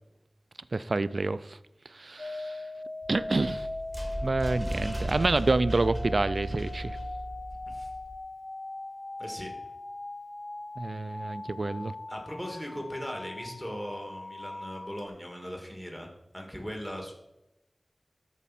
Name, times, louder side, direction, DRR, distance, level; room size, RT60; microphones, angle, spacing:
voice 1, 0.7-1.6 1.9-2.6 3.1-3.7 4.2-7.0 10.8-11.9, right 3 dB, 70° right, 15 dB, 0.3 m, -28 dB
sound 1, 2.2-15.1, left 2 dB, 60° left, 0.5 m, -40 dB
sound 2, 3.0-8.2, right 1 dB, 10° right, 1.3 m, -36 dB
voice 2, 7.5-7.9 9.2-9.5 12.1-16.1 16.3-17.1, equal, 10° left, 1 dB, 2.2 m, -39 dB
12.5 x 4.6 x 4.2 m, 0.90 s
wide cardioid pair, 50°, 0 cm